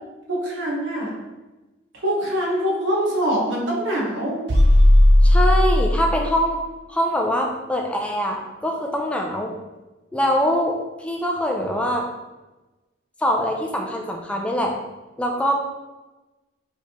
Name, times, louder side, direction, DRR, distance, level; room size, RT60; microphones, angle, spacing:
voice 1, 0.3-1.1 2.0-4.4, equal, 85° right, -3 dB, 1.1 m, -24 dB
sound 1, 4.5-6.3, left 1 dB, 60° right, 0.6 m, -15 dB
voice 2, 5.2-6.6 6.9-9.5 10.1-12.1 13.2-14.7 15.2-15.5, equal, 5° left, 0 dB, 0.4 m, -23 dB
4.7 x 3.2 x 2.9 m, 1.1 s
head